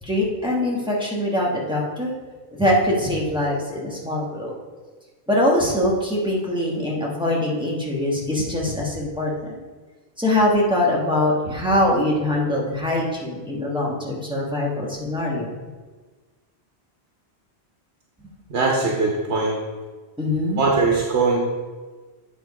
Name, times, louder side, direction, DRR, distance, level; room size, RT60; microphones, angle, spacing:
voice 1, 0.0-2.1 2.5-4.5 5.3-9.6 10.2-15.5 20.2-20.6, left 1 dB, 5° right, -5 dB, 1.3 m, -23 dB
voice 2, 18.5-19.6 20.6-21.4, right 3 dB, 85° right, -2 dB, 1.2 m, -21 dB
8.9 x 3.6 x 4.7 m, 1.4 s
omnidirectional pair, 1.1 m